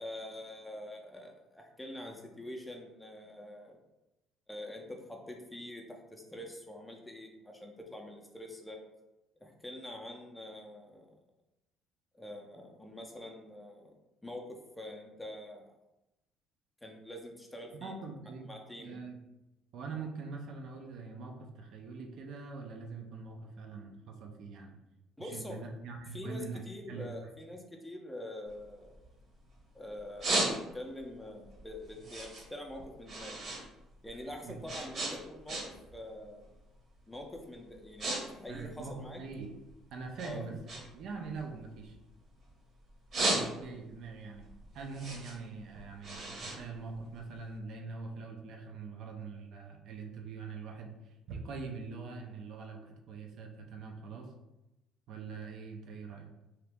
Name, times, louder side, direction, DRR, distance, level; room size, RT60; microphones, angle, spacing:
voice 1, 0.0-3.8 4.5-8.8 9.4-11.2 12.1-14.0 14.2-15.7 16.8-17.9 18.4-19.0 25.2-25.7 26.1-28.9 29.7-33.4 34.0-35.6 35.9-36.4 37.1-39.2 40.2-40.5, left 1 dB, 5° left, 2 dB, 0.5 m, -45 dB
voice 2, 17.8-18.5 18.8-19.2 19.7-24.8 25.2-27.1 34.4-34.5 38.5-39.5 39.9-42.0 43.2-44.5 44.7-54.3 55.1-56.3, right 4 dB, 65° right, 2 dB, 0.5 m, -43 dB
sound 1, 28.5-29.6 30.0-31.0 31.4-33.6 33.9-35.9 36.2-36.6 37.2-37.4 37.7-38.2 38.5-39.7 40.2-42.5 42.9-43.9 44.3-47.5, right 2 dB, 45° right, 0.9 m, -35 dB
2.9 x 2.4 x 3.4 m, 0.97 s
cardioid pair, 110°, 0 cm